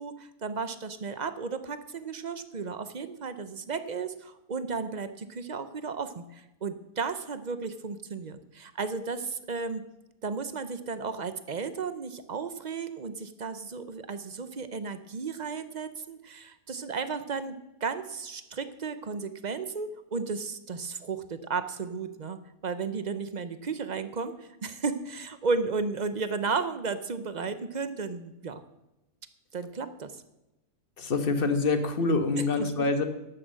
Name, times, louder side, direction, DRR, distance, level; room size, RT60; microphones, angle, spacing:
voice 1, 0.0-9.9 10.2-22.4 22.6-28.6 29.5-30.2 32.4-32.9, right 4 dB, 40° right, 11 dB, 0.6 m, -34 dB
voice 2, 31.0-33.1, left 3 dB, 40° left, 8 dB, 1.3 m, -26 dB
12.0 x 8.5 x 7.6 m, 0.94 s
omnidirectional pair, 1.6 m